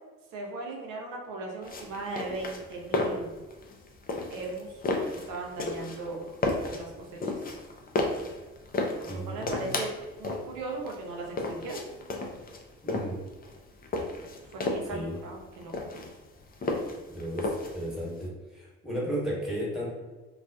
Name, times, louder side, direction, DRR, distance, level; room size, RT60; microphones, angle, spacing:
voice 1, 0.3-3.3 4.3-4.7 5.0-6.2 6.7-7.4 9.1-9.9 10.2-11.9 14.5-15.7, right 3 dB, 70° right, 0 dB, 0.7 m, -38 dB
sound 1, 1.6-18.2, left 2 dB, 25° left, 0.5 m, -33 dB
voice 2, 9.0-9.7 12.8-13.2 14.9-15.2 17.1-19.9, equal, ahead, -6 dB, 1.3 m, -34 dB
2.4 x 2.3 x 2.2 m, 1.2 s
hypercardioid pair, 50°, 34 cm